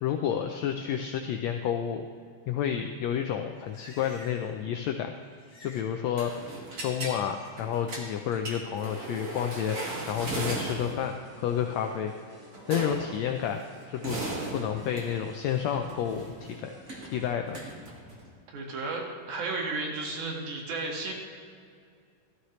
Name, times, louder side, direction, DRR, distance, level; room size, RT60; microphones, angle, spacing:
voice 1, 0.0-2.1 2.5-5.1 5.6-6.3 6.8-9.8 10.1-12.1 12.7-13.6 13.9-14.2 14.5-16.7 17.1-17.6, left 9 dB, 85° left, 5 dB, 1.5 m, -30 dB
Livestock farm animals working animals, 3.2-4.6 4.9-5.9 6.2-7.5 8.0-8.4, left 1 dB, 40° left, 2.4 m, -54 dB
sound 1, 6.2-7.2 7.6-11.1 12.5-13.2 13.8-18.3, right 2 dB, 35° right, 1.3 m, -37 dB
sound 2, 9.8-17.3, equal, 10° right, 1.4 m, -53 dB
voice 2, 18.5-21.1, right 3 dB, 65° right, 0 dB, 3.1 m, -33 dB
16.0 x 13.0 x 3.1 m, 2.2 s
omnidirectional pair, 3.8 m